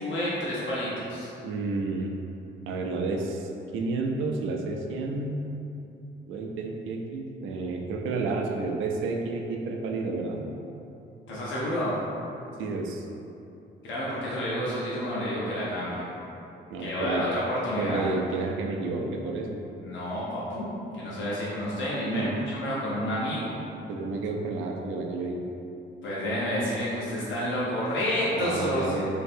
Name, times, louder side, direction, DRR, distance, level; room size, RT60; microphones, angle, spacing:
voice 1, 0.0-1.3 11.3-11.9 13.8-16.0 16.8-18.0 19.8-23.6 26.0-29.1, equal, 75° left, -8 dB, 1.0 m, -29 dB
voice 2, 1.4-2.1 2.7-5.4 6.3-10.4 12.6-13.1 16.7-17.2 17.8-19.6 22.0-22.3 23.9-25.4 28.3-29.1, right 3 dB, 90° right, 2 dB, 0.5 m, -31 dB
3.0 x 2.6 x 4.3 m, 2.8 s
cardioid pair, 90°, 20 cm